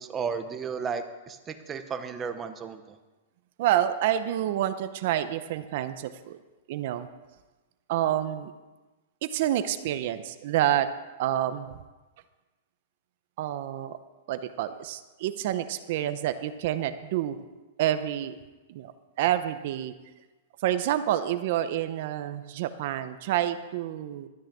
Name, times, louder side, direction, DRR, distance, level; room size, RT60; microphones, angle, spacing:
voice 1, 0.0-3.0, right 6 dB, 15° right, 9 dB, 0.8 m, -34 dB
voice 2, 3.6-6.4 6.7-7.1 7.9-8.5 9.2-10.9 11.2-11.7 13.4-14.0 14.3-17.4 17.8-18.3 18.7-18.9 19.2-19.9 20.6-24.3, right 12 dB, 50° right, 11 dB, 0.7 m, -28 dB
13.0 x 6.4 x 8.4 m, 1.2 s
supercardioid pair, 165°, 0 cm